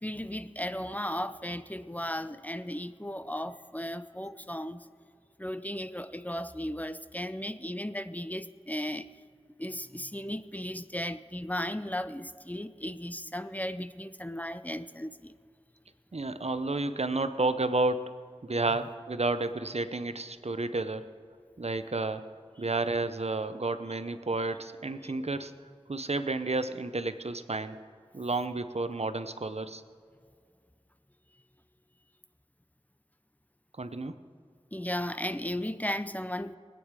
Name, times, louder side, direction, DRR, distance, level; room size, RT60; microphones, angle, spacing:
voice 1, 0.0-4.9 5.4-9.1 9.6-15.3 25.0-25.1 34.7-36.6, left 1 dB, 15° left, 12 dB, 0.5 m, -35 dB
voice 2, 16.1-18.1 18.4-21.1 21.6-22.2 22.6-25.5 25.9-27.8 28.1-29.8 33.8-34.2, right 2 dB, 70° right, 11 dB, 0.7 m, -31 dB
22.5 x 9.3 x 4.7 m, 2.2 s
wide cardioid pair, 40°, 11 cm